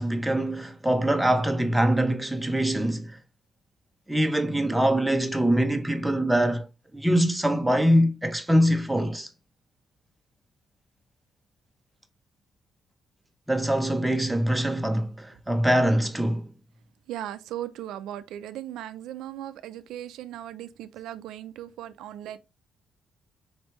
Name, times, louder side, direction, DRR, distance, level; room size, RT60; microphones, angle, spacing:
voice 1, 0.0-3.2 4.1-6.6 6.9-9.3 13.5-16.5, equal, 5° right, 0.8 m, -23 dB
voice 2, 17.1-22.4, right 12 dB, 85° right, 0.3 m, -37 dB
4.3 x 3.1 x 3.0 m
cardioid pair, 90°, 0 cm